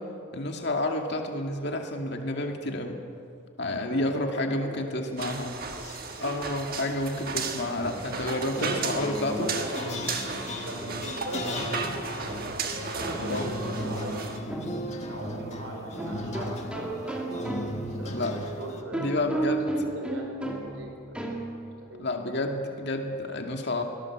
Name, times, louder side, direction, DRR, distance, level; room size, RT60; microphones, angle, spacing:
voice 1, 0.3-3.0 3.6-5.5 6.2-9.5 13.3-13.5 18.0-18.3 18.9-19.7 22.0-23.8, left 1 dB, 50° left, 3 dB, 2.3 m, -30 dB
voice 2, 3.8-5.0 8.4-10.2 10.6-12.6 12.9-14.3 15.0-19.5 19.9-21.3 21.8-22.0, right 1 dB, 70° right, 2 dB, 4.8 m, -39 dB
sound 1, 5.2-14.4, right 4 dB, 45° right, 1.6 m, -35 dB
sound 2, 5.6-6.2 7.2-18.8, left 1 dB, 30° left, 1.8 m, -37 dB
sound 3, 7.7-21.9, right 1 dB, 5° right, 2.1 m, -37 dB
23.5 x 18.0 x 7.5 m, 2.6 s
head